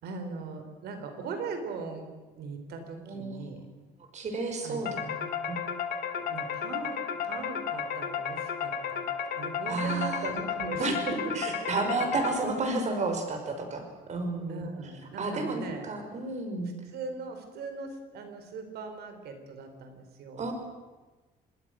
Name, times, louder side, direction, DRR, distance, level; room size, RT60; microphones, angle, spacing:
voice 1, 0.0-2.1 2.3-3.7 4.6-5.0 6.1-9.0 9.4-11.5 11.9-12.2 14.5-15.9 16.9-20.4, right 4 dB, 70° right, 7 dB, 4.3 m, -39 dB
voice 2, 3.1-3.5 4.1-5.6 9.7-10.2 10.8-14.6 15.2-16.7 20.4-20.5, right 3 dB, 45° right, 5 dB, 5.4 m, -32 dB
sound 1, 4.8-12.7, left 7 dB, 70° left, 2.4 m, -33 dB
26.5 x 20.0 x 6.4 m, 1.2 s
cardioid pair, 110°, 17 cm